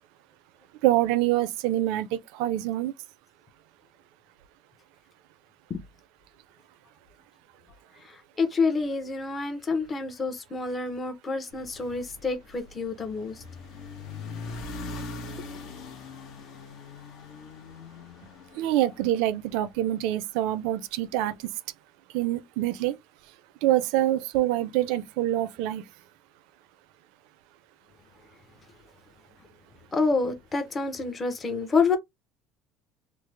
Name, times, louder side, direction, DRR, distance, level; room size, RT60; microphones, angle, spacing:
voice 1, 0.8-2.9 18.5-21.5 22.1-23.0 23.6-25.8, right 14 dB, 80° right, 0.5 m, -25 dB
voice 2, 8.0-13.4 29.9-32.0, left 4 dB, 20° left, 0.7 m, -28 dB
sound 1, 11.5-19.9, left 3 dB, 60° left, 0.8 m, -41 dB
3.2 x 2.0 x 3.3 m
cardioid pair, 145°, 0 cm